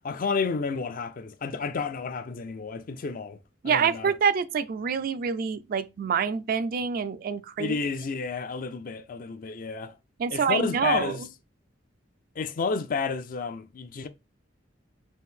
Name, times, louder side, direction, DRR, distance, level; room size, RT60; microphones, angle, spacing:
voice 1, 0.0-3.4 3.6-4.1 7.6-9.9 10.3-11.2 12.4-14.1, left 4 dB, 50° left, 0.4 m, -31 dB
voice 2, 3.6-7.7 10.2-11.1, right 6 dB, 50° right, 0.4 m, -26 dB
4.1 x 2.5 x 3.7 m
head